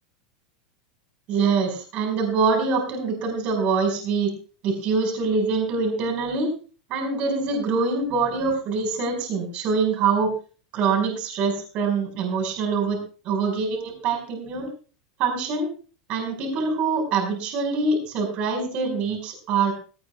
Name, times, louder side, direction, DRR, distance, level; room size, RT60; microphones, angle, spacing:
voice 1, 1.3-4.3 4.6-6.5 6.9-10.3 10.7-13.0 13.2-14.7 15.2-15.7 16.1-19.7, right 4 dB, 40° right, 2 dB, 4.9 m, -24 dB
18.5 x 17.5 x 2.3 m, 0.38 s
supercardioid pair, 160°, 3 cm